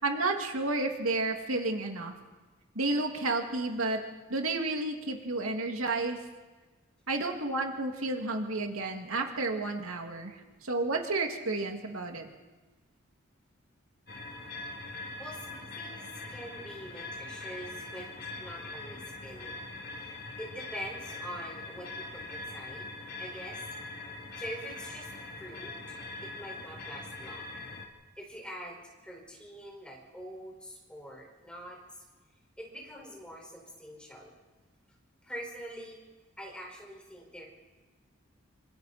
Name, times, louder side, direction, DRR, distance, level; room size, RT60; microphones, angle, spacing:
voice 1, 0.0-2.1 2.8-4.0 4.3-6.2 7.1-10.3 10.6-12.3, right 2 dB, 90° right, 3 dB, 2.3 m, -31 dB
sound 1, 14.1-27.9, left 2 dB, 50° left, 2.6 m, -42 dB
voice 2, 15.2-18.1 18.4-22.9 23.2-23.6 24.4-25.1 25.4-25.7 26.2-27.6 28.2-32.0 32.6-34.3 35.2-36.0 36.4-37.5, equal, 5° left, -2 dB, 5.2 m, -44 dB
26.5 x 26.0 x 4.3 m, 1.2 s
head